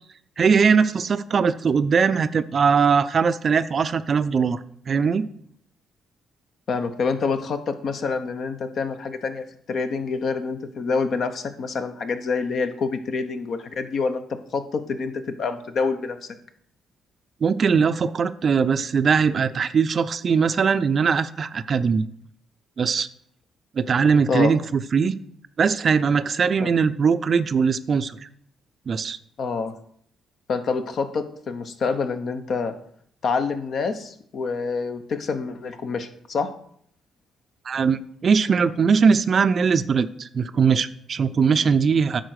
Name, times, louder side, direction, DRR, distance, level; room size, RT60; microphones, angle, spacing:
voice 1, 0.4-4.6 4.9-5.3 17.4-22.0 22.8-23.1 23.8-25.1 25.6-28.1 28.9-29.2 37.7-42.2, right 6 dB, 45° right, 13 dB, 0.5 m, -20 dB
voice 2, 6.7-16.2 24.3-24.5 26.6-26.7 29.4-29.7 30.5-32.7 33.2-36.5, left 4 dB, 55° left, 8 dB, 0.9 m, -27 dB
10.0 x 4.0 x 6.4 m, 0.64 s
cardioid pair, 90°, 0 cm